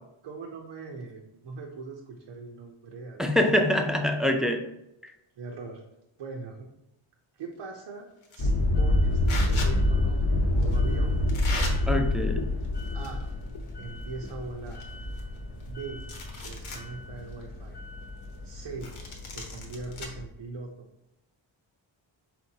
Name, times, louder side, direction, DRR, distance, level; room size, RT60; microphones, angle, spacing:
voice 1, 0.2-3.4 5.4-5.8 6.2-6.7 7.3-8.1 8.3-11.2 11.7-11.9 12.9-13.2 13.8-14.8 15.6-16.0 16.3-17.8 18.4-18.9 19.3-20.9, right 4 dB, 85° right, -1 dB, 0.7 m, -41 dB
voice 2, 3.2-4.7 5.0-5.1 11.9-12.5, left 1 dB, ahead, 4 dB, 0.4 m, -25 dB
sound 1, 8.2-8.5 9.3-9.7 10.6-10.8 11.3-11.7 12.6-13.3 13.6-13.7 14.3-14.4 14.7-15.7 16.0-16.8 17.3-17.4 18.8-20.1, left 3 dB, 85° left, 0.9 m, -38 dB
sound 2, 8.4-20.2, left 1 dB, 55° left, 0.7 m, -28 dB
4.3 x 3.7 x 2.7 m, 0.85 s
cardioid pair, 70°, 48 cm